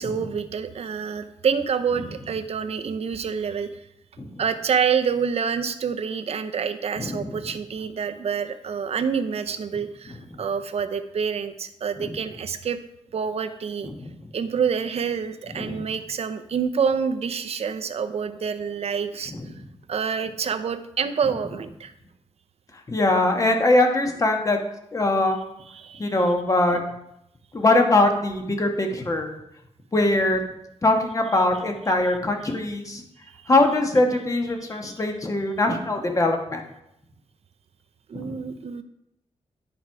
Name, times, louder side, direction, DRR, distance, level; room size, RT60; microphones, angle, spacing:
voice 1, 0.0-3.7 4.4-12.8 13.1-13.9 14.3-19.3 19.9-21.9 25.7-26.1 38.1-38.8, right 6 dB, 60° right, 8 dB, 0.7 m, -27 dB
voice 2, 7.0-7.4 10.1-10.2 12.0-12.1 13.8-14.1 15.6-15.9 19.3-19.5 22.9-24.6 24.9-25.4 26.0-26.8 27.5-29.3 29.9-30.4 30.8-33.0 33.5-36.6 38.1-38.4, left 2 dB, 30° left, 3 dB, 1.3 m, -22 dB
10.5 x 4.7 x 4.7 m, 0.81 s
wide cardioid pair, 95°, 12 cm